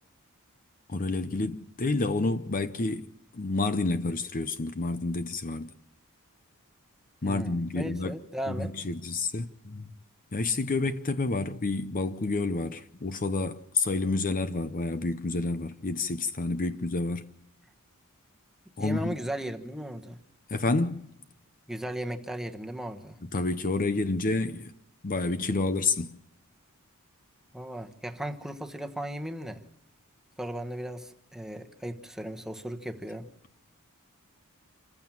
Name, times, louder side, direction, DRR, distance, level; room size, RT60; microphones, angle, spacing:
voice 1, 0.9-3.1 3.3-5.7 7.2-8.1 8.5-9.9 10.3-17.2 18.8-19.2 20.5-21.1 23.3-24.7 25.0-26.2, left 3 dB, 40° left, 0.7 m, -29 dB
voice 2, 7.2-8.7 18.8-20.2 21.7-23.2 27.5-29.6 30.4-33.3, right 1 dB, ahead, 1.3 m, -36 dB
27.5 x 15.0 x 7.3 m
head